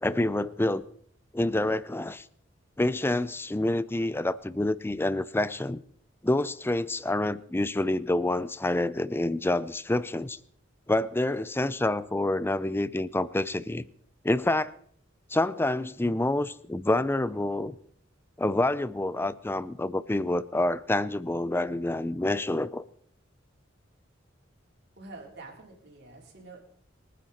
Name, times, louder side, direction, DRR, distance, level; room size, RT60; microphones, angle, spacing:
voice 1, 0.0-0.8 1.3-2.2 2.8-5.8 6.2-10.4 10.9-13.8 14.2-14.7 15.3-17.8 18.4-22.8, left 1 dB, 10° left, 0.5 m, -27 dB
voice 2, 25.0-26.6, right 3 dB, 55° right, 4.0 m, -46 dB
24.5 x 9.3 x 4.3 m
head